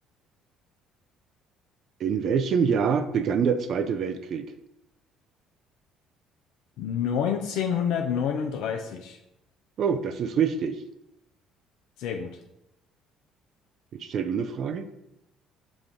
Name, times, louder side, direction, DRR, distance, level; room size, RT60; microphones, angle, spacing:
voice 1, 2.0-4.5 9.8-10.8 13.9-14.9, right 6 dB, 55° right, 8 dB, 0.3 m, -25 dB
voice 2, 6.8-9.2 12.0-12.3, left 8 dB, 70° left, 4 dB, 0.4 m, -28 dB
5.9 x 2.5 x 3.5 m, 0.85 s
hypercardioid pair, 60°, 0 cm